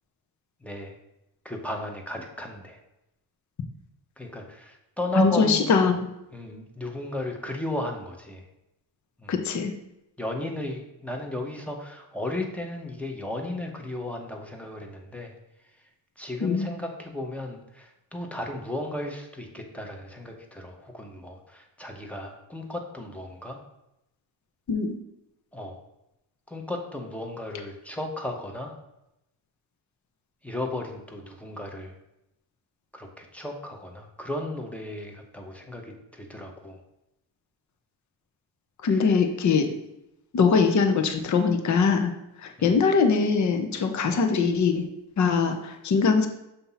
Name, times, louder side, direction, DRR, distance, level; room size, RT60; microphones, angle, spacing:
voice 1, 0.6-1.0 1.4-2.8 4.2-5.8 6.3-8.4 9.2-9.3 10.2-15.3 16.2-23.6 25.5-25.8 26.5-28.7 30.4-31.9 32.9-36.8 38.9-39.1 42.6-42.8, left 1 dB, 5° left, 2 dB, 0.8 m, -35 dB
voice 2, 5.1-6.0 9.3-9.7 16.4-16.7 24.7-24.9 38.8-39.7 40.3-42.1 42.4-44.8 45.2-46.3, left 5 dB, 35° left, 5 dB, 0.7 m, -22 dB
7.1 x 2.7 x 5.6 m, 0.88 s
cardioid pair, 120°, 48 cm